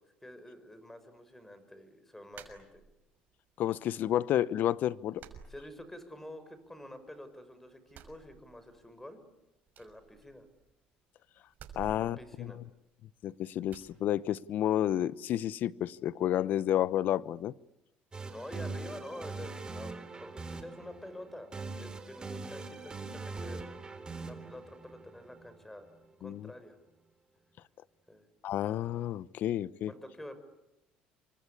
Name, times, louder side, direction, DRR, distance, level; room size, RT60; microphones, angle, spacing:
voice 1, 0.2-2.8 5.5-9.2 9.8-10.5 11.8-12.6 18.3-23.7 24.2-25.8 26.2-26.8 28.1-28.3 29.9-30.4, left 1 dB, 10° left, 11 dB, 6.0 m, -48 dB
sound 1, 2.3-3.2 3.6-4.3 4.6-4.7 5.1-6.3 6.6-7.4 7.8-9.0 9.2-9.3 9.7-10.8 11.5-13.2 13.7-13.9, right 6 dB, 55° right, 6.2 m, -53 dB
voice 2, 3.6-5.2 11.8-12.5 13.2-17.5 26.2-26.5 28.4-29.9, left 12 dB, 60° left, 18 dB, 0.9 m, -30 dB
sound 2, 18.1-26.0, right 3 dB, 25° right, 3.8 m, -42 dB
28.5 x 24.5 x 8.6 m, 0.92 s
supercardioid pair, 95°, 3 cm